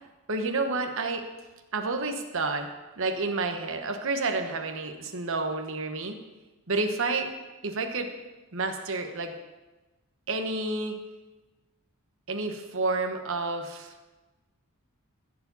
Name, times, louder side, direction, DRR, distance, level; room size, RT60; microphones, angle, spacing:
voice 1, 0.3-1.3 1.7-2.7 3.0-6.2 6.7-7.3 7.6-8.1 8.5-9.3 10.3-11.0 12.3-13.9, right 3 dB, 60° right, 5 dB, 1.1 m, -30 dB
14.5 x 4.9 x 6.9 m, 1.2 s
head